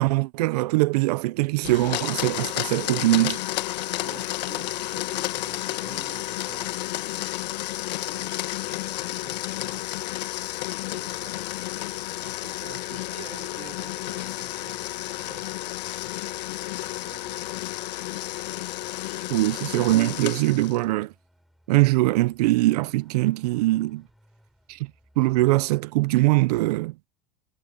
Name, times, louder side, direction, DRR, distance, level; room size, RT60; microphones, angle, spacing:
voice 1, 0.0-3.4 19.3-21.1 21.7-24.0 24.7-24.8 25.2-26.9, right 19 dB, 70° right, 0.6 m, -22 dB
Domestic sounds home sounds, 1.6-20.8, left 17 dB, 85° left, 1.3 m, -31 dB
voice 2, 3.8-6.8 8.0-10.2 10.8-11.6 12.2-15.6 16.7-17.7 19.2-19.3, right 14 dB, 30° right, 4.9 m, -48 dB
Vehicle, 8.2-25.5, equal, ahead, 6.0 m, -62 dB
supercardioid pair, 165°, 21 cm